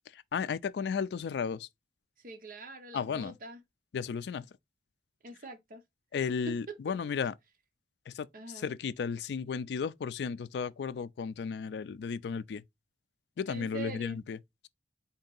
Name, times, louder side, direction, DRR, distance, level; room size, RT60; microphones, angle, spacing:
voice 1, 0.1-1.7 2.9-3.3 3.9-4.5 6.1-7.3 8.1-8.3 8.5-12.6 13.4-14.4, left 6 dB, 70° left, 0.3 m, -34 dB
voice 2, 2.2-3.6 5.2-5.8 6.5-6.8 8.3-8.7 13.5-14.2, right 3 dB, 50° right, 0.8 m, -44 dB
4.3 x 2.7 x 3.8 m
head